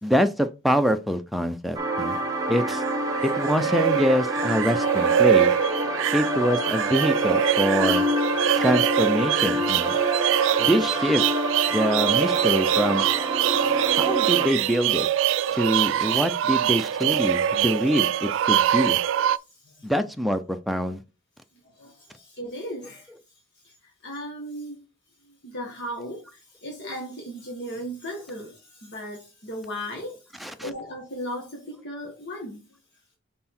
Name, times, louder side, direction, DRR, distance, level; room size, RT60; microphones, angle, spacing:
voice 1, 0.0-2.2 2.5-2.8 3.2-5.5 6.1-8.0 8.5-10.0 10.6-11.2 11.7-13.0 14.0-15.1 15.5-19.0 19.8-21.0 30.4-30.7, equal, ahead, 0.6 m, -25 dB
sound 1, 1.8-14.5, equal, 20° right, 1.2 m, -28 dB
sound 2, 2.4-19.4, right 10 dB, 70° right, 0.3 m, -24 dB
voice 2, 10.2-10.6 13.4-14.3 15.5-15.6 18.7-18.8 19.3-19.9 21.5-23.1 23.6-24.8 25.2-32.8, equal, 60° left, 1.6 m, -37 dB
5.9 x 4.2 x 4.4 m
head